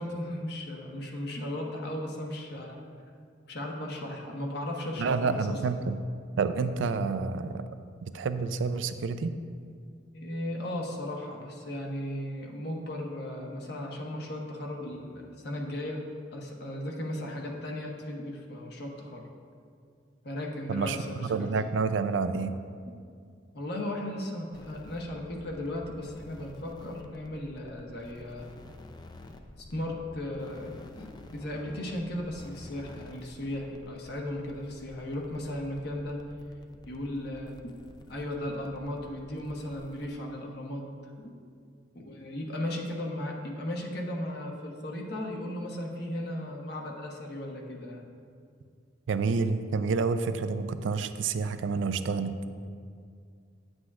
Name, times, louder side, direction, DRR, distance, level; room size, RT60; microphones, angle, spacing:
voice 1, 0.0-2.8 3.5-5.6 10.1-16.0 16.3-19.2 20.2-21.5 23.5-28.5 29.6-36.2 36.8-37.8 38.1-40.9 41.2-41.3 41.9-48.0, left 1 dB, 60° left, -1 dB, 1.0 m, -36 dB
voice 2, 5.0-6.0 6.4-7.6 8.0-9.3 20.7-21.0 21.3-22.5 49.1-52.4, right 4 dB, 90° right, 11 dB, 0.4 m, -28 dB
sound 1, 24.5-40.1, left 2 dB, 25° left, 0.3 m, -50 dB
9.7 x 7.9 x 2.4 m, 2.2 s
head